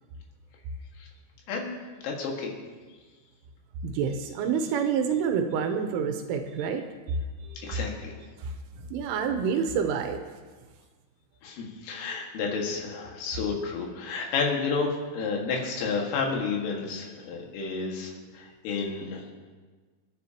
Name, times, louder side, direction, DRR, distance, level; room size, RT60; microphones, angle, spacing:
voice 1, 2.0-2.5 7.6-8.2 11.4-19.3, left 4 dB, 75° left, 0 dB, 4.3 m, -31 dB
voice 2, 3.8-7.2 7.6-7.8 8.4-8.5 8.9-10.2, right 6 dB, 80° right, 5 dB, 3.2 m, -28 dB
28.0 x 10.0 x 2.9 m, 1.4 s
omnidirectional pair, 5.9 m